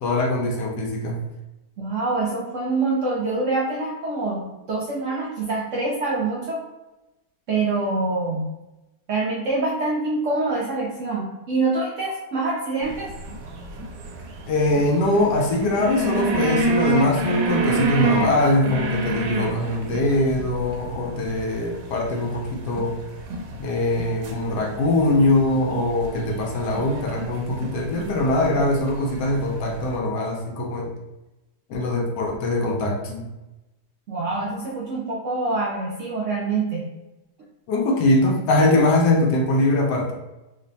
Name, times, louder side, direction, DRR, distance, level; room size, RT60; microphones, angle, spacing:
voice 1, 0.0-1.2 14.5-23.0 23.6-30.9 31.7-33.3 37.7-40.1, left 2 dB, 80° left, 1 dB, 1.2 m, -22 dB
voice 2, 1.8-6.6 7.5-8.5 9.1-13.1 34.1-36.9, right 3 dB, 65° right, -4 dB, 0.8 m, -25 dB
sound 1, 12.8-30.0, right 3 dB, 85° right, 1.2 m, -30 dB
3.1 x 2.2 x 3.9 m, 1.0 s
omnidirectional pair, 1.8 m